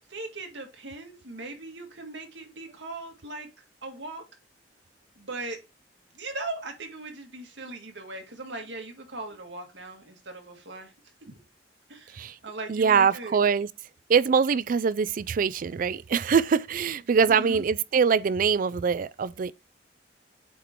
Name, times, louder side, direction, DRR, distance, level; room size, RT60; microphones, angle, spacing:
voice 1, 0.1-3.5 3.8-4.2 5.2-5.6 6.1-10.9 11.3-11.4 11.9-13.4 17.3-17.6, right 2 dB, 80° right, 2.0 m, -39 dB
voice 2, 12.7-13.7 14.1-19.5, right 6 dB, 50° right, 0.4 m, -23 dB
8.3 x 3.7 x 4.5 m
head